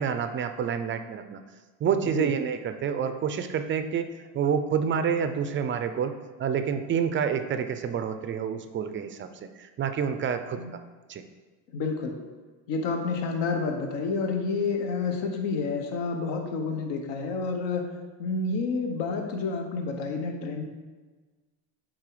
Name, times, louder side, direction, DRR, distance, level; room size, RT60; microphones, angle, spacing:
voice 1, 0.0-1.4 1.8-4.1 4.3-6.1 6.4-9.3 9.6-10.6 11.1-11.2, right 7 dB, 30° right, 9 dB, 0.4 m, -28 dB
voice 2, 11.7-12.2 12.7-20.6, left 4 dB, 75° left, 3 dB, 1.3 m, -29 dB
8.5 x 3.8 x 4.8 m, 1.3 s
cardioid pair, 135°, 43 cm